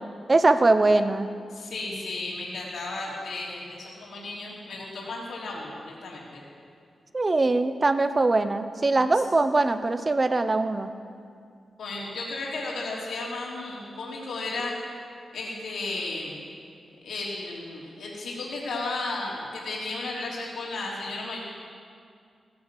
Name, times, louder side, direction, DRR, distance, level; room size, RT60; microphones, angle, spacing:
voice 1, 0.3-1.3 7.1-10.9, right 2 dB, 25° right, 10 dB, 0.6 m, -22 dB
voice 2, 1.5-6.4 11.8-14.7 15.3-16.3 17.0-21.4, left 2 dB, 85° left, -4 dB, 3.2 m, -34 dB
17.0 x 9.5 x 7.4 m, 2.3 s
wide cardioid pair, 165°, 0 cm